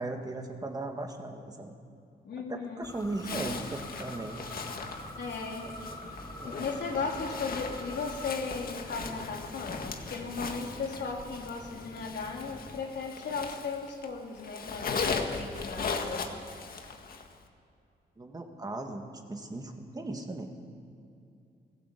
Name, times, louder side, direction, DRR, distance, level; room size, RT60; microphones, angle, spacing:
voice 1, 0.0-1.8 2.3-4.4 6.0-6.8 18.2-19.0 19.3-20.5, right 2 dB, 20° right, 3 dB, 2.0 m, -38 dB
voice 2, 2.2-2.9 5.2-5.7 6.4-16.2, left 4 dB, 75° left, 0 dB, 3.4 m, -36 dB
sound 1, 2.8-12.8, left 1 dB, 20° left, 2.1 m, -46 dB
Zipper (clothing), 3.2-14.1 14.4-17.3, left 5 dB, 55° left, 1.8 m, -38 dB
20.0 x 17.0 x 8.4 m, 2.5 s
wide cardioid pair, 150°, 18 cm